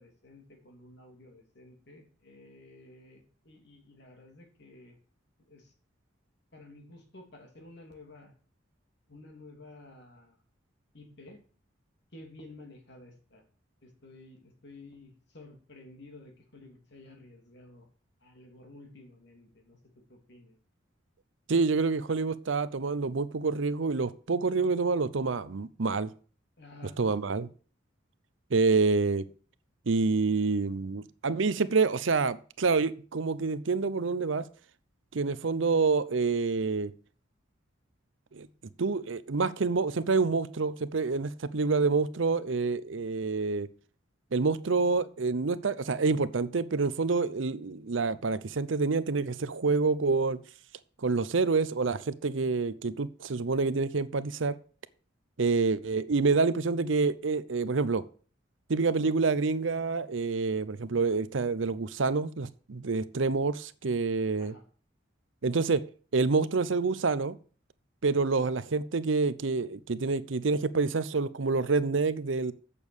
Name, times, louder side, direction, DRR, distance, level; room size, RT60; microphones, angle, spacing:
voice 1, 0.0-5.0 5.4-5.7 6.5-8.3 9.1-10.4 10.9-11.4 12.1-13.4 13.8-17.9 18.2-19.8 20.1-20.6 26.6-27.3 64.4-64.6, left 2 dB, 55° left, 3.0 m, -52 dB
voice 2, 21.5-26.1 27.0-27.5 28.5-29.2 29.9-34.5 35.1-36.9 38.3-38.5 38.8-43.7 44.3-50.4 51.0-54.6 55.4-58.0 58.7-64.5 65.4-65.8 66.1-67.4 68.0-72.5, right 4 dB, 75° right, 0.7 m, -27 dB
8.3 x 6.9 x 7.1 m
head